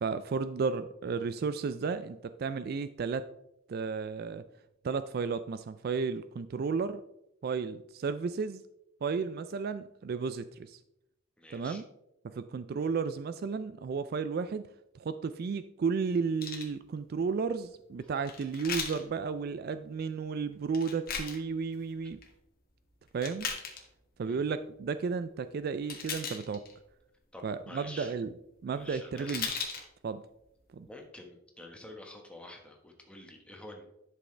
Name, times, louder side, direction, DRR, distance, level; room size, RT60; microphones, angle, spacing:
voice 1, 0.0-3.3 3.7-4.4 4.8-7.0 7.4-8.6 9.0-10.8 11.5-11.8 12.2-14.7 14.9-22.2 23.1-23.5 24.2-26.6 27.4-28.3 28.6-29.5 30.0-30.2 30.7-30.9, right 5 dB, 45° right, 12 dB, 0.3 m, -33 dB
voice 2, 11.4-11.8 18.0-18.1 22.0-22.1 24.2-24.5 27.3-28.2 28.7-29.5 30.9-33.8, left 1 dB, 5° left, 1 dB, 1.3 m, -48 dB
sound 1, 16.4-16.7 18.2-19.0 20.7-21.4 21.9-22.3 23.1-23.8 25.9-26.7 28.9-29.0 29.2-29.8 30.4-30.5, left 5 dB, 45° left, 1.5 m, -37 dB
11.0 x 6.3 x 3.3 m, 0.84 s
head